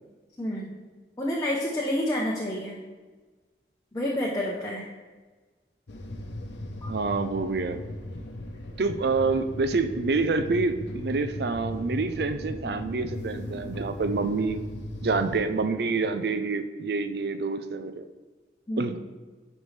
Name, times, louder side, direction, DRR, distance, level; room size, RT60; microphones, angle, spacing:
voice 1, 0.4-0.8 1.2-2.8 3.9-4.9 6.8-7.0 18.7-19.0, left 1 dB, 20° left, -4 dB, 0.8 m, -29 dB
sound 1, 5.9-15.4, left 1 dB, 85° left, 0.9 m, -37 dB
voice 2, 6.9-7.8 8.8-14.6 15.0-18.0 18.8-19.0, right 4 dB, 60° right, 10 dB, 0.5 m, -27 dB
9.2 x 5.3 x 3.3 m, 1.3 s
head